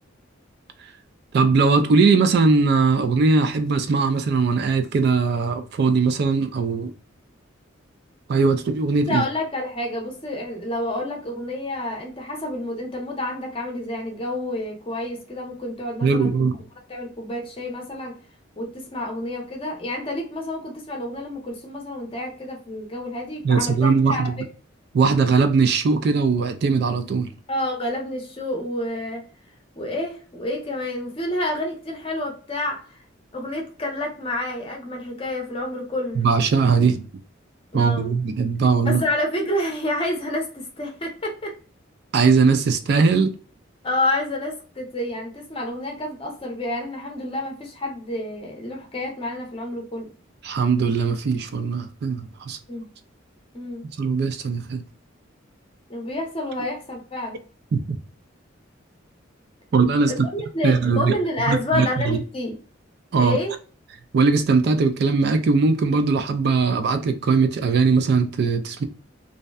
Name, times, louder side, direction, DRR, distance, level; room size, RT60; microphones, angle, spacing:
voice 1, 1.3-6.9 8.3-9.2 16.0-16.6 23.4-24.3 24.9-27.3 36.2-37.0 37.7-39.0 42.1-43.3 50.4-52.6 54.0-54.8 57.7-58.0 59.7-60.3 60.6-61.1 61.5-62.2 63.1-63.4 64.1-68.8, right 4 dB, 55° right, 0.3 m, -20 dB
voice 2, 9.1-16.5 16.9-18.1 18.6-24.3 27.5-29.2 29.8-33.0 33.3-36.2 37.7-38.1 38.8-41.5 43.8-50.1 52.7-52.8 53.5-53.8 55.9-57.4 60.1-62.6 63.2-63.5, left 1 dB, 30° left, 0.7 m, -29 dB
2.6 x 2.1 x 2.3 m
head